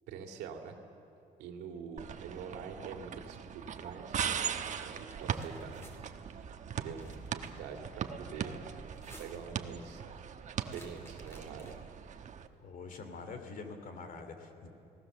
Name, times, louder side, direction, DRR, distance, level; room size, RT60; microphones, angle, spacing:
voice 1, 0.1-0.8 1.4-4.3 4.8-5.8 6.8-8.6 9.2-10.0 10.7-11.8, right 6 dB, 90° right, 3 dB, 2.3 m, -45 dB
sound 1, 2.0-12.5, right 7 dB, 45° right, 1.2 m, -40 dB
sound 2, 5.0-6.0 6.8-7.3 8.8-9.5 10.6-12.0, equal, 15° left, 4.4 m, -56 dB
voice 2, 12.6-14.7, left 4 dB, 55° left, 7 dB, 2.9 m, -45 dB
28.5 x 18.0 x 7.0 m, 2.8 s
cardioid pair, 110°, 17 cm